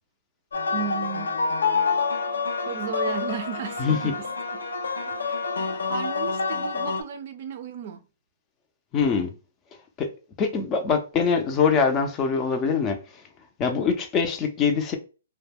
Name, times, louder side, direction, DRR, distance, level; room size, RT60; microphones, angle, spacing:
sound 1, 0.5-7.0, left 4 dB, 85° left, 0.5 m, -27 dB
voice 1, 0.7-1.4 2.7-4.3 4.5-4.6 5.3-5.4 5.9-8.0, right 8 dB, 50° right, 0.5 m, -34 dB
voice 2, 3.8-4.1 8.9-9.3 10.0-10.1 10.4-13.2 13.6-15.0, left 5 dB, 20° left, 0.5 m, -23 dB
2.2 x 2.1 x 3.5 m
hypercardioid pair, 150°, 0 cm